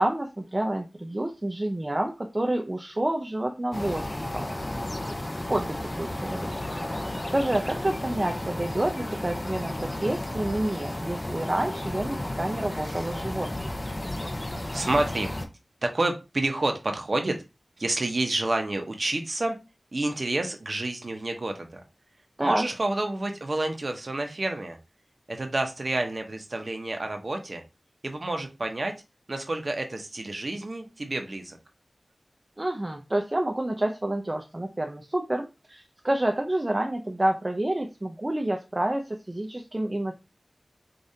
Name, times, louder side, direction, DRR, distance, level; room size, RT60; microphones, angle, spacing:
voice 1, 0.0-4.4 5.5-6.5 6.9-13.8 22.4-22.6 32.6-40.2, right 1 dB, 30° right, 3 dB, 0.6 m, -28 dB
sound 1, 3.7-15.5, left 1 dB, 30° left, 0.7 m, -33 dB
voice 2, 14.7-15.3 15.8-17.4 17.8-19.6 19.9-21.8 22.4-24.8 25.3-27.6 28.0-28.9 29.3-31.6, right 2 dB, 60° right, 5 dB, 0.9 m, -29 dB
5.0 x 2.6 x 2.7 m, 0.27 s
wide cardioid pair, 45°, 0 cm